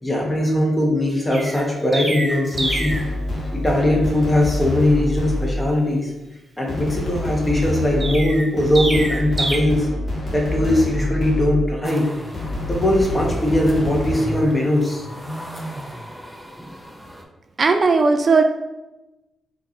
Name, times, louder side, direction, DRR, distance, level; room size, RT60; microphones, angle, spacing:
voice 1, 0.0-3.0 3.5-6.1 6.6-9.9 10.3-12.1 12.7-15.0, left 1 dB, 20° left, -1 dB, 1.2 m, -20 dB
Chirp tweet, 1.3-3.1 8.0-9.6, right 2 dB, 30° right, 0.9 m, -26 dB
sound 1, 2.5-5.8 6.7-11.8 12.3-14.6, left 1 dB, 50° left, 1.2 m, -26 dB
sound 2, 11.8-17.2, equal, ahead, 0.6 m, -36 dB
voice 2, 17.6-18.4, right 4 dB, 50° right, 6 dB, 0.3 m, -16 dB
4.3 x 2.5 x 3.0 m, 1.0 s
supercardioid pair, 50°, 0 cm